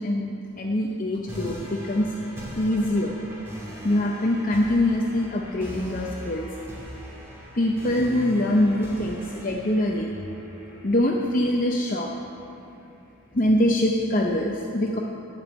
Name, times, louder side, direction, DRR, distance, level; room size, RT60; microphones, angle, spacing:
voice 1, 0.0-2.1 2.6-3.1 3.8-6.5 7.5-10.1 10.8-12.1 13.3-15.0, left 1 dB, 40° left, -1 dB, 0.7 m, -24 dB
sound 1, 1.3-12.3, equal, 10° right, 2.7 m, -41 dB
11.5 x 5.2 x 8.4 m, 2.7 s
head